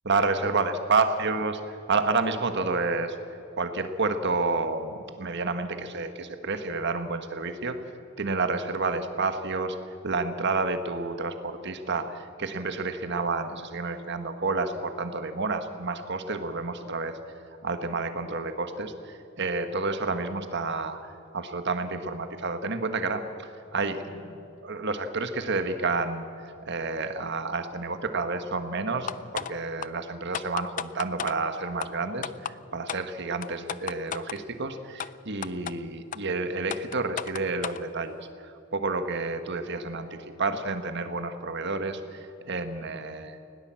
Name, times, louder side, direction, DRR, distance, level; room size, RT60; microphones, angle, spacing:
voice 1, 0.0-3.1 3.5-7.8 8.2-17.2 17.6-43.4, right 3 dB, 55° right, 8 dB, 1.5 m, -30 dB
sound 1, 29.1-29.5 29.8-29.9 30.3-31.3 31.8-31.9 32.2-32.5 32.9-33.0 33.4-34.4 35.0-35.1 35.4-35.7 36.1-36.2 36.7-37.8, left 8 dB, 40° left, 0.4 m, -33 dB
19.5 x 18.0 x 7.6 m, 2.5 s
head